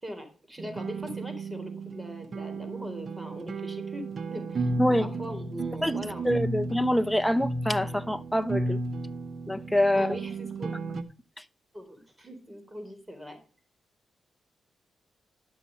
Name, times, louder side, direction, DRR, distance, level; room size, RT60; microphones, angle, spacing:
voice 1, 0.0-4.7 5.0-6.3 9.9-10.7 11.7-13.4, equal, 15° right, 4.1 m, -40 dB
sound 1, 0.6-11.0, right 3 dB, 60° right, 1.1 m, -34 dB
voice 2, 4.8-5.1 5.8-6.0 6.2-8.8 9.5-10.2, left 1 dB, 5° left, 0.9 m, -25 dB
12.5 x 7.0 x 5.3 m
supercardioid pair, 60°, 0 cm